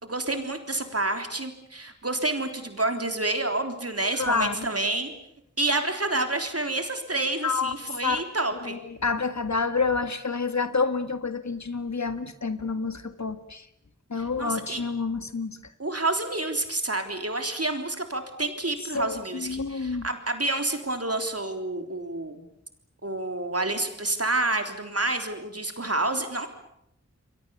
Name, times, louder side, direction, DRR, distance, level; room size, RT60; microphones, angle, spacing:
voice 1, 0.0-5.1 5.6-8.8 14.4-14.8 15.8-22.4 23.0-26.5, right 2 dB, 55° right, 6 dB, 3.7 m, -29 dB
voice 2, 4.2-4.7 7.4-7.7 8.0-8.2 8.6-13.7 14.1-15.6 18.9-20.1, left 4 dB, 70° left, 10 dB, 1.8 m, -28 dB
29.0 x 22.5 x 7.2 m, 0.77 s
wide cardioid pair, 40°, 29 cm